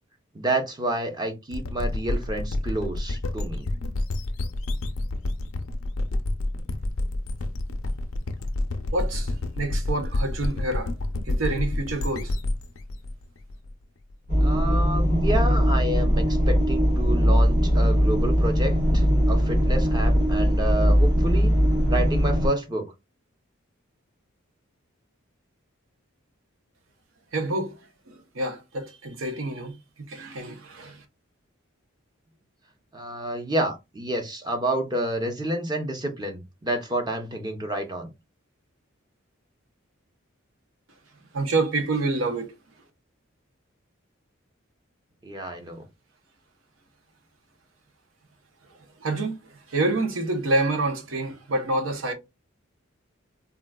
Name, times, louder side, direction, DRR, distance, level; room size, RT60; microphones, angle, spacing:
voice 1, 0.3-3.7 14.4-21.5 21.9-22.9 32.9-38.1 45.2-45.8, right 1 dB, 20° right, 0.6 m, -29 dB
sound 1, 1.5-14.1, left 1 dB, 80° left, 0.5 m, -29 dB
voice 2, 8.9-10.9 11.2-12.3 27.3-31.0 41.3-42.5 49.0-52.1, right 2 dB, 75° right, 0.8 m, -28 dB
sound 2, 14.3-22.5, equal, 60° right, 1.4 m, -20 dB
3.7 x 2.3 x 2.2 m
head